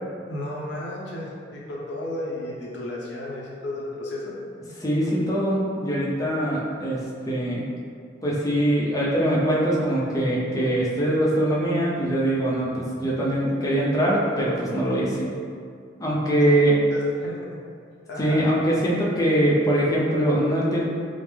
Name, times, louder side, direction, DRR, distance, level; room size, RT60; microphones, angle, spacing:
voice 1, 0.3-4.3 16.9-17.6 18.1-18.4, left 1 dB, 65° left, -4 dB, 0.8 m, -33 dB
voice 2, 4.8-7.6 8.2-15.3 16.0-16.8 18.2-20.8, right 1 dB, 20° left, -6 dB, 0.6 m, -22 dB
5.2 x 2.0 x 3.3 m, 2.2 s
head